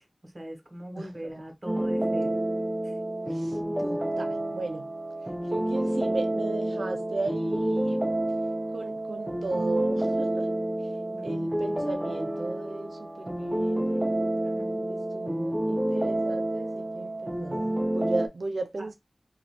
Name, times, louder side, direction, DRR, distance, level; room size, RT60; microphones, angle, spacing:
voice 1, 0.0-2.4 2.8-2.9 11.1-11.2 14.6-14.7 18.8-18.9, equal, 35° right, 1.0 m, -41 dB
voice 2, 1.0-1.3 3.3-4.9 5.5-8.1 8.7-10.5 11.2-14.1 14.9-18.9, right 3 dB, 90° right, 0.4 m, -35 dB
sound 1, 1.7-18.3, right 1 dB, 20° right, 0.4 m, -29 dB
3.1 x 2.3 x 2.6 m
wide cardioid pair, 70°, 0 cm